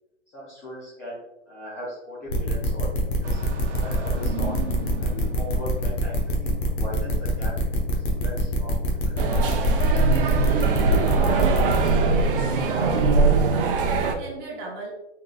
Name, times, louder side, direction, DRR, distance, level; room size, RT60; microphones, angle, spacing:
voice 1, 0.3-3.4 3.7-4.6 5.0-7.6 7.9-9.7, equal, 10° left, -8 dB, 0.4 m, -38 dB
sound 1, 2.3-11.9, right 1 dB, 60° left, 1.1 m, -25 dB
Engine starting, 3.2-6.2, right 7 dB, 80° right, 0.8 m, -37 dB
sound 2, 9.2-14.2, right 3 dB, 50° right, 0.5 m, -21 dB
voice 2, 12.4-14.9, right 2 dB, 25° right, -2 dB, 1.0 m, -38 dB
3.7 x 3.7 x 2.3 m, 0.95 s
hypercardioid pair, 145°, 35 cm